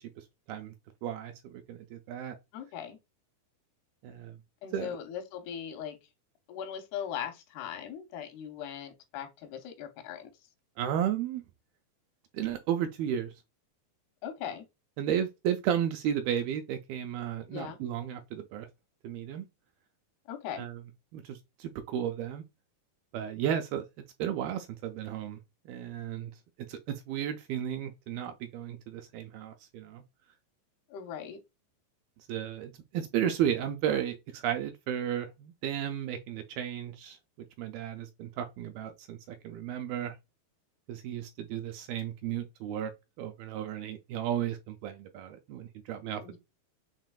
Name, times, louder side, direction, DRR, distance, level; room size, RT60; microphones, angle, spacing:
voice 1, 1.0-2.4 4.0-4.4 4.7-5.0 10.8-11.4 12.3-13.3 15.0-18.7 19.0-19.5 20.6-20.8 21.1-22.4 23.1-23.9 24.2-25.4 25.7-26.3 26.7-30.0 32.3-37.2 37.6-40.2 40.9-42.9 43.2-46.2, right 10 dB, 80° right, 2.2 m, -33 dB
voice 2, 2.5-3.0 4.6-6.0 6.5-10.3 14.2-14.6 17.5-17.8 20.3-20.7 30.9-31.4 46.2-46.4, left 9 dB, 85° left, 3.0 m, -39 dB
7.3 x 3.0 x 2.3 m
omnidirectional pair, 4.6 m